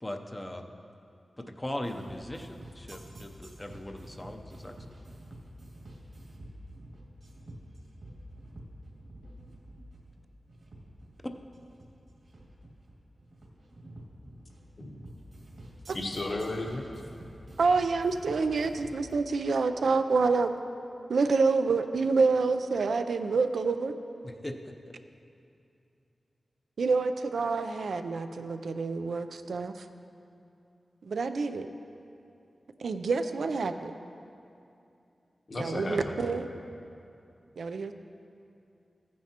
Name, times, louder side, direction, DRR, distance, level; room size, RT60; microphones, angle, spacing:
voice 1, 0.0-0.7 1.4-5.0 24.2-24.9, left 1 dB, 15° left, 4 dB, 0.6 m, -39 dB
sound 1, 1.8-19.1, right 1 dB, 75° right, 2.1 m, -48 dB
voice 2, 15.9-16.8 35.5-36.1, left 2 dB, 50° left, 1 dB, 1.1 m, -34 dB
voice 3, 17.6-20.6 21.1-23.9 26.8-29.9 31.1-31.7 32.8-33.9 35.6-36.5 37.6-37.9, right 4 dB, 90° right, 8 dB, 0.4 m, -27 dB
15.0 x 9.2 x 2.9 m, 2.6 s
wide cardioid pair, 120°, 0 cm